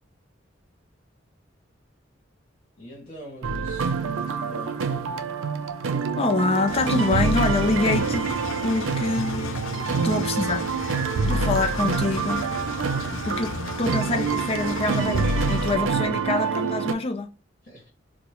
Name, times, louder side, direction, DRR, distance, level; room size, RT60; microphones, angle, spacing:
voice 1, 2.8-4.9 9.6-10.1 17.6-17.9, equal, 50° left, 1.9 m, -44 dB
sound 1, 3.4-16.9, right 5 dB, 85° right, 0.4 m, -26 dB
voice 2, 6.2-8.3 8.6-9.6 10.0-10.7 11.2-12.5 13.1-17.3, left 3 dB, 30° left, 0.5 m, -25 dB
Engine, 6.7-15.8, left 4 dB, 85° left, 0.4 m, -35 dB
4.3 x 2.2 x 3.0 m
head